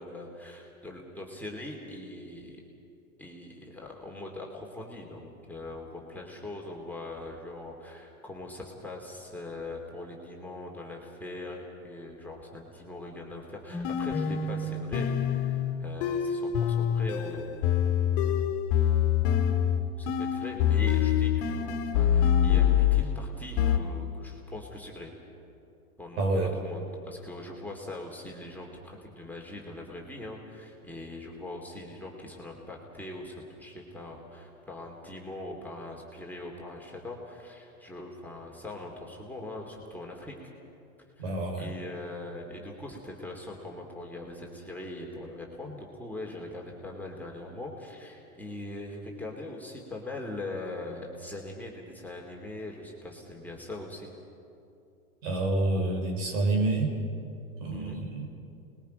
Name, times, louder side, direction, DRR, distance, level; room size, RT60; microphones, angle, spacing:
voice 1, 0.0-2.6 3.2-18.4 19.2-19.6 20.0-25.1 26.0-40.4 41.2-41.3 41.6-54.1 57.7-58.0, left 2 dB, 5° left, -2 dB, 2.8 m, -41 dB
sound 1, 13.7-23.2 23.6-23.8, left 9 dB, 45° left, 2.0 m, -25 dB
voice 2, 26.2-26.6 41.2-41.7 55.2-56.9 57.6-58.3, right 2 dB, 60° right, 3 dB, 4.6 m, -28 dB
28.5 x 21.0 x 5.3 m, 2.7 s
hypercardioid pair, 120°, 43 cm